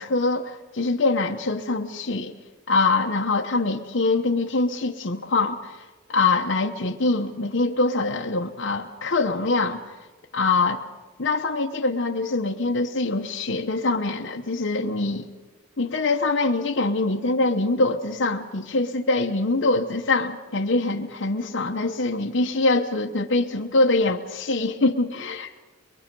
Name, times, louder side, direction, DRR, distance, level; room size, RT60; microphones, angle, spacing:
voice 1, 0.0-2.3 2.7-5.8 6.1-9.8 10.3-10.8 11.2-15.3 15.8-25.5, left 3 dB, 55° left, 0 dB, 0.9 m, -24 dB
23.0 x 23.0 x 5.3 m, 1.2 s
head